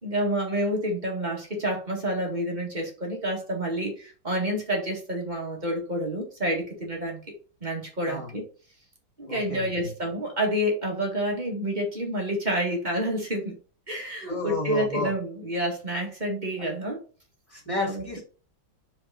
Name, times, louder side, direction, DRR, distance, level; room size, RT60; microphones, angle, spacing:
voice 1, 0.0-7.2 7.6-8.4 9.2-13.5 13.9-17.0 17.8-18.0, equal, 25° right, 0 dB, 1.9 m, -28 dB
voice 2, 9.3-9.9 14.2-15.1 17.5-18.2, left 1 dB, 15° left, -2 dB, 2.5 m, -32 dB
5.1 x 4.8 x 4.1 m, 0.37 s
omnidirectional pair, 2.0 m